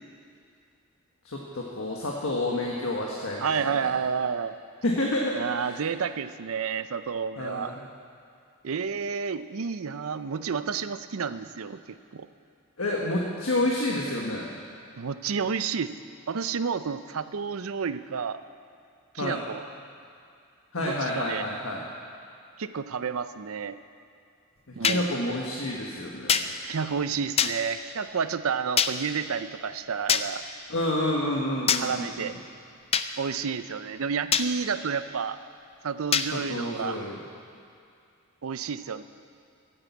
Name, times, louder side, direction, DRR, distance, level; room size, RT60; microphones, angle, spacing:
voice 1, 1.2-3.5 3.8-3.9 4.8-5.8 7.4-7.8 12.8-14.5 19.2-19.4 20.7-21.9 24.7-26.5 30.7-32.3 36.3-37.2, left 1 dB, 70° left, -2 dB, 1.5 m, -29 dB
voice 2, 3.4-4.6 5.3-7.8 8.6-12.3 15.0-15.9 16.3-18.4 19.1-19.6 20.8-21.5 22.6-23.8 24.8-25.1 26.6-30.4 31.7-32.3 33.2-35.4 35.8-37.0 38.4-39.0, right 6 dB, 70° right, 12 dB, 0.5 m, -30 dB
sound 1, 24.8-25.0 26.3-26.5 27.4-27.5 28.8-28.9 30.1-30.3 31.7-31.8 32.9-33.1 34.3-34.5 36.1-36.3, left 7 dB, 30° left, 0.5 m, -22 dB
15.0 x 8.7 x 8.3 m, 2.4 s
head